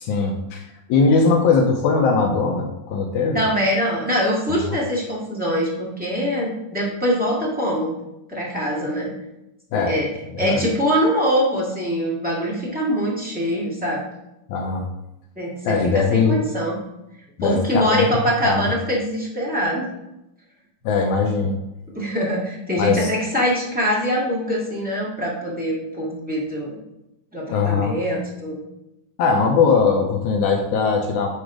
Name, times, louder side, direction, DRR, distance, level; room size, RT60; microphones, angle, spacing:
voice 1, 0.0-3.4 4.7-4.8 9.7-10.0 10.3-10.6 14.5-14.9 15.7-16.4 17.4-18.1 18.4-18.7 20.8-21.6 22.8-23.1 27.5-28.0 29.2-31.3, left 4 dB, 75° left, 2 dB, 2.0 m, -20 dB
voice 2, 3.3-7.9 8.3-9.1 9.7-10.1 10.4-14.0 15.4-16.8 17.4-19.9 21.9-26.8 27.3-28.6, equal, 10° right, -6 dB, 0.5 m, -23 dB
9.7 x 3.7 x 4.9 m, 0.90 s
omnidirectional pair, 3.8 m